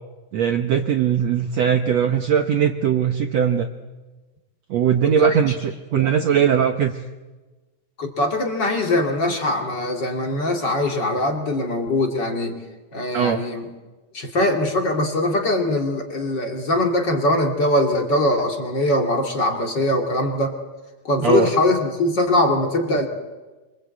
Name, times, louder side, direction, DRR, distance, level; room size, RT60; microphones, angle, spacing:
voice 1, 0.3-3.7 4.7-7.0 13.1-13.4 21.2-21.5, right 8 dB, 70° right, 6 dB, 1.6 m, -20 dB
voice 2, 5.0-5.5 5.9-6.4 8.0-12.6 12.9-13.7 14.1-20.5 21.0-23.1, left 1 dB, 30° left, 3 dB, 2.6 m, -22 dB
25.5 x 25.0 x 8.4 m, 1.2 s
omnidirectional pair, 4.4 m